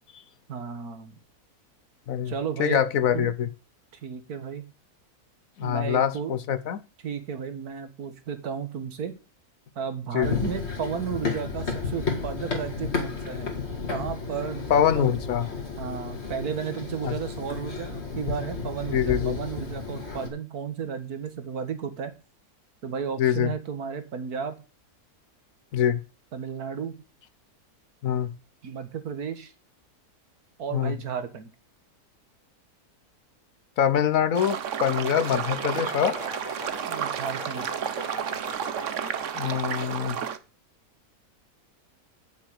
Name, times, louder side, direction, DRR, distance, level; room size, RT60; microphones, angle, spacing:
voice 1, 0.5-1.2 2.3-2.8 3.1-3.3 4.0-4.7 5.6-6.3 7.0-9.1 9.8-13.6 13.9-15.1 15.8-22.1 22.8-24.6 26.3-27.0 28.6-29.5 30.6-31.5 36.9-37.7, right 7 dB, 75° right, 9 dB, 2.0 m, -33 dB
voice 2, 2.6-3.5 5.6-6.8 10.1-10.4 14.7-15.5 17.0-17.1 18.9-19.4 23.2-23.5 25.7-26.0 28.0-28.3 30.7-31.0 33.8-36.2 39.3-40.2, left 9 dB, 65° left, 14 dB, 1.2 m, -24 dB
Run, 10.2-20.3, left 4 dB, 45° left, 2.3 m, -32 dB
sound 1, 34.3-40.4, right 8 dB, 55° right, 1.1 m, -31 dB
sound 2, 34.9-39.9, left 1 dB, 30° left, 2.9 m, -42 dB
8.7 x 7.4 x 7.9 m, 0.33 s
omnidirectional pair, 1.6 m